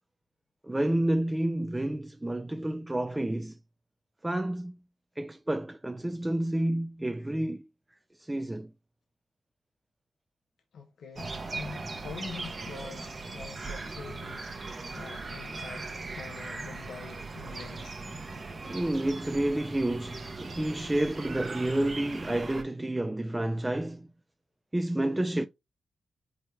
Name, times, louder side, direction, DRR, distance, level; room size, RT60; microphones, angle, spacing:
voice 1, 0.6-3.6 4.2-4.8 5.2-7.7 8.2-8.7 18.6-24.1 24.7-25.5, right 1 dB, 15° right, 0.3 m, -30 dB
voice 2, 10.7-18.0, left 5 dB, 75° left, 0.4 m, -45 dB
sound 1, 11.2-22.6, right 3 dB, 45° right, 0.8 m, -39 dB
4.6 x 2.1 x 3.3 m
supercardioid pair, 45°, 0 cm